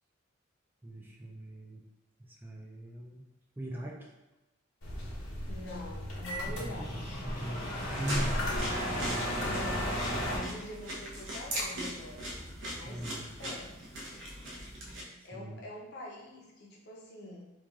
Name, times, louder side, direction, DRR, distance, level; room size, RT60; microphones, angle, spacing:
voice 1, 0.8-1.8 2.2-3.2 3.6-4.1 6.5-8.7 12.7-13.5 15.2-15.6, equal, 10° right, -1 dB, 0.3 m, -41 dB
sound 1, 4.8-10.4, equal, 90° left, 1.0 m, -34 dB
voice 2, 5.5-7.2 9.1-12.3 12.6-13.0 13.4-14.0 15.2-17.4, left 1 dB, 60° left, -2 dB, 0.8 m, -45 dB
sound 2, 7.8-15.0, equal, 65° right, 0.8 m, -40 dB
3.1 x 2.4 x 3.5 m, 1.0 s
head